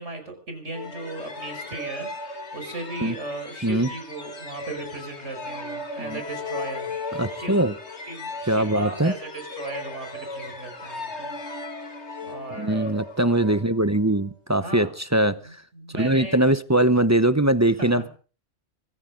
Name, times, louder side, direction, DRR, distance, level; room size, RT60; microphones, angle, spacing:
voice 1, 0.0-7.5 8.1-11.3 12.2-12.9 14.6-14.9 15.4-16.4 17.6-18.1, right 2 dB, 75° right, 5 dB, 5.9 m, -37 dB
sound 1, 0.7-14.2, left 2 dB, 65° left, 2.5 m, -37 dB
voice 2, 7.1-7.7 8.5-9.1 12.6-15.4 15.9-18.1, right 1 dB, 15° right, 13 dB, 0.7 m, -21 dB
25.5 x 14.0 x 3.8 m, 0.38 s
omnidirectional pair, 1.2 m